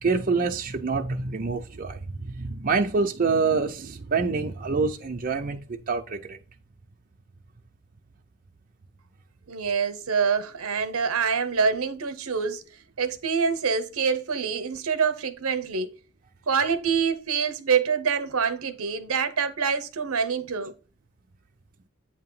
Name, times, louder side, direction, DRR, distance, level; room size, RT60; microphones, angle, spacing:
voice 1, 0.0-6.4, right 4 dB, 40° right, 0.5 m, -26 dB
voice 2, 9.5-12.6 13.0-16.0 16.5-20.7, right 6 dB, 70° right, 0.8 m, -26 dB
8.5 x 2.8 x 5.4 m
head